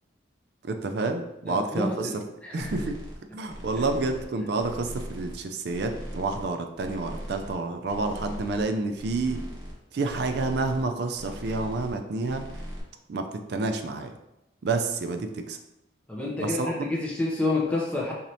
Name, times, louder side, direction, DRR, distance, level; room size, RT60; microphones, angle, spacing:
voice 1, 0.6-2.2 2.5-3.0 3.3-9.4 9.9-12.4 13.1-14.1 14.6-15.6 16.4-16.9, right 3 dB, 55° right, 6 dB, 0.4 m, -29 dB
voice 2, 1.4-2.1 2.4-2.8 3.5-3.6 16.1-18.1, left 2 dB, 5° left, -4 dB, 0.5 m, -29 dB
sound 1, 2.6-3.2 3.5-4.3 4.6-5.4 5.7-6.5 6.8-7.6 7.9-8.7 8.9-9.7 10.0-10.9 11.1-12.0 12.2-12.8, equal, 70° right, 1.0 m, -39 dB
4.2 x 3.1 x 2.7 m, 0.91 s
head